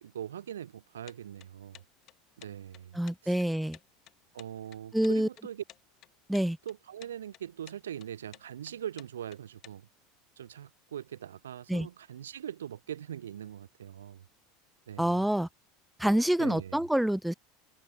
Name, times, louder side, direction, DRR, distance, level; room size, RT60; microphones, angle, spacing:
voice 1, 0.0-1.8 2.4-3.4 4.3-5.6 6.6-9.9 10.4-14.3 14.9-15.3 16.4-16.9, right 10 dB, 75° right, 2.8 m, -42 dB
sound 1, 1.0-9.7, left 15 dB, 45° left, 3.1 m, -54 dB
voice 2, 2.9-3.8 4.9-5.3 6.3-6.6 11.7-11.9 15.0-15.5 16.0-17.3, right 1 dB, 5° right, 0.6 m, -27 dB
figure-of-eight pair, 75°, 0 cm